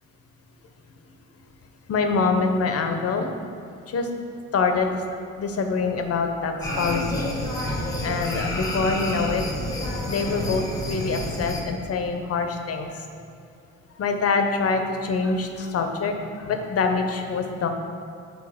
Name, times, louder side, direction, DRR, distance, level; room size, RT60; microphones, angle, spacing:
voice 1, 1.9-3.3 3.9-4.1 4.5-5.0 5.4-7.3 8.0-9.6 10.1-13.0 14.0-17.7, left 4 dB, 50° left, 5 dB, 0.7 m, -25 dB
sound 1, 6.6-11.6, left 1 dB, 10° left, 1.0 m, -29 dB
7.1 x 3.8 x 4.9 m, 2.6 s
cardioid pair, 90°, 30 cm